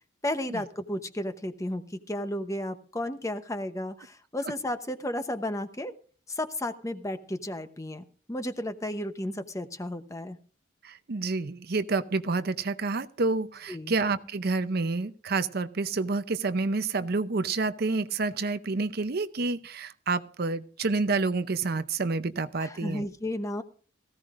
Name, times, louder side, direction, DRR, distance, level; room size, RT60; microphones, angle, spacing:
voice 1, 0.2-5.9 6.3-10.4 13.7-13.9 22.6-23.6, left 1 dB, 15° left, 9 dB, 0.9 m, -33 dB
voice 2, 10.8-23.1, right 3 dB, 50° right, 11 dB, 0.6 m, -29 dB
18.0 x 15.5 x 2.5 m, 0.40 s
head